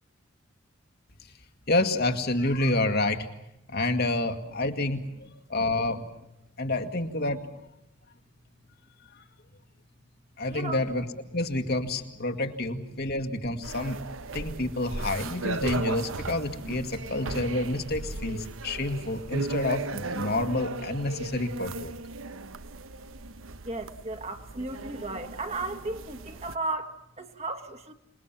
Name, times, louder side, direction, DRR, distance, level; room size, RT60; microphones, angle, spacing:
voice 1, 1.7-3.3 3.7-6.0 6.6-7.4 10.4-11.1 11.3-14.0 14.3-21.9, left 2 dB, 50° left, 6 dB, 1.9 m, -28 dB
voice 2, 10.5-10.8 23.6-27.9, right 2 dB, 30° right, 6 dB, 1.8 m, -35 dB
sound 1, 13.6-26.6, right 3 dB, 70° right, 1.1 m, -37 dB
27.0 x 21.0 x 7.4 m, 0.87 s
head